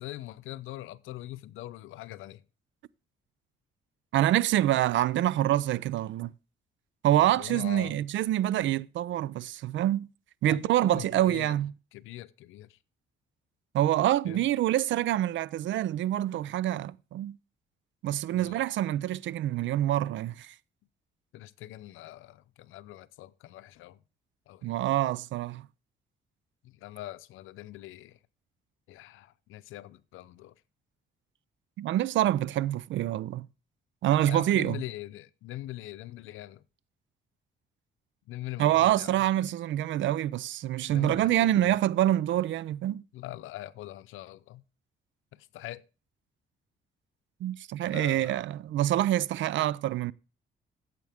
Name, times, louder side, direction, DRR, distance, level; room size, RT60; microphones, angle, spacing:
voice 1, 0.0-2.4 7.1-8.0 10.5-11.6 11.9-12.8 14.2-14.5 18.3-18.6 21.3-24.0 24.5-24.7 26.6-28.2 28.9-30.5 34.2-36.6 38.3-39.1 40.9-41.8 43.1-44.6 45.3-45.8 47.9-48.4, left 15 dB, 90° left, 0.7 m, -42 dB
voice 2, 4.1-6.3 7.0-10.1 10.4-11.7 13.7-17.4 18.0-20.5 24.6-25.7 31.8-33.5 34.0-34.8 38.6-43.0 47.4-50.1, right 13 dB, 75° right, 0.5 m, -26 dB
15.0 x 7.6 x 3.5 m
cardioid pair, 90°, 20 cm